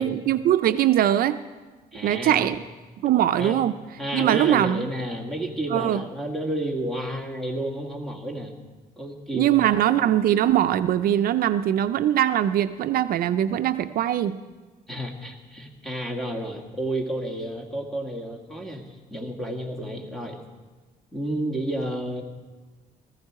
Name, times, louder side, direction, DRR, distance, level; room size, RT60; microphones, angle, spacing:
voice 1, 0.0-1.4 2.0-2.6 3.0-3.7 4.1-4.9 5.7-6.0 9.3-14.4, right 11 dB, 65° right, 11 dB, 0.5 m, -21 dB
voice 2, 1.9-2.6 3.4-3.6 4.0-8.6 9.0-9.7 14.9-20.4 21.1-22.2, right 1 dB, ahead, 0 dB, 1.9 m, -31 dB
18.5 x 14.5 x 4.7 m, 1.3 s
cardioid pair, 135°, 16 cm